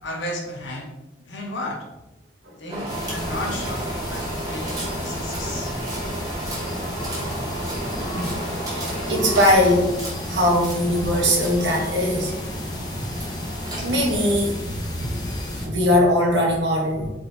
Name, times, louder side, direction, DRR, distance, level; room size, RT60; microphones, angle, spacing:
voice 1, 0.0-0.9 1.2-1.8 2.6-5.7, left 1 dB, 90° left, 0 dB, 1.0 m, -33 dB
sound 1, 2.7-14.3, right 1 dB, 20° right, 1.1 m, -33 dB
sound 2, 2.9-15.7, left 1 dB, 20° left, 0.6 m, -32 dB
voice 2, 8.7-10.0 10.3-12.3 13.8-14.5 14.9-15.1 15.6-17.1, left 1 dB, 75° right, -1 dB, 1.2 m, -20 dB
3.9 x 3.7 x 2.7 m, 0.98 s
head